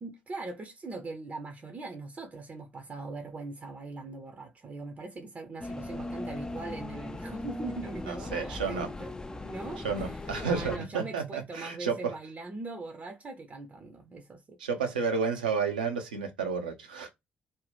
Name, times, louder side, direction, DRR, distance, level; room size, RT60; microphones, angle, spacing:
voice 1, 0.0-9.1 9.4-14.6, right 3 dB, 35° right, 0.6 m, -41 dB
sound 1, 5.6-10.8, left 2 dB, 15° left, 0.3 m, -39 dB
voice 2, 8.1-8.9 9.8-12.1 14.6-17.1, right 5 dB, 80° right, 0.5 m, -31 dB
2.6 x 2.2 x 3.3 m
figure-of-eight pair, 45°, 5 cm